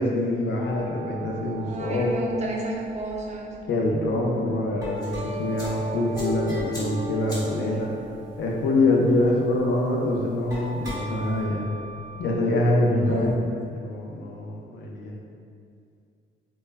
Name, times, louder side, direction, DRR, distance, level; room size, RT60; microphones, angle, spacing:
voice 1, 0.0-2.1 3.7-7.9 8.4-11.7 12.2-13.3 13.7-15.1, left 2 dB, 65° left, -1 dB, 0.5 m, -25 dB
sound 1, 0.6-4.1 4.4-12.3, equal, 20° right, 0.9 m, -37 dB
voice 2, 1.6-3.5 12.9-13.5, right 1 dB, 35° right, -2 dB, 0.5 m, -32 dB
sound 2, 4.9-11.4, equal, 20° left, 1.0 m, -47 dB
2.1 x 2.1 x 3.3 m, 2.3 s
cardioid pair, 90°, 20 cm